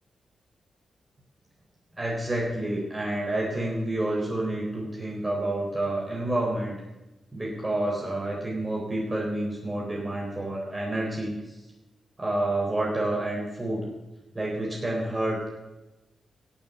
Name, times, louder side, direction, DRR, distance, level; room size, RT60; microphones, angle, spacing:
voice 1, 1.9-6.8 7.3-11.6 12.2-13.9 14.3-15.5, right 1 dB, 20° right, -3 dB, 4.2 m, -29 dB
17.5 x 7.2 x 6.9 m, 1.0 s
cardioid pair, 70°, 0 cm